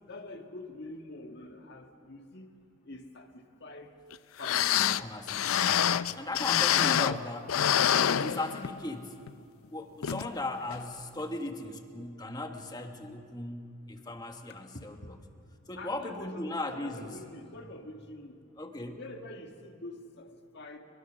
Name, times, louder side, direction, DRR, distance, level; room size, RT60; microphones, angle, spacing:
voice 1, 0.0-2.6 2.8-3.9 4.4-4.9 14.7-15.1 15.8-18.4 19.0-20.8, left 2 dB, 55° left, 4 dB, 1.8 m, -46 dB
sound 1, 4.1-4.2 4.4-7.2 7.5-8.9 9.3-9.4 10.0-10.3 10.7-10.8, left 9 dB, 80° left, 0.5 m, -26 dB
voice 2, 5.0-5.4 6.1-7.6 7.8-9.2 9.7-15.2 15.7-17.2 18.6-19.0, left 2 dB, 20° left, 5 dB, 1.4 m, -37 dB
24.0 x 22.5 x 6.3 m, 2.5 s
head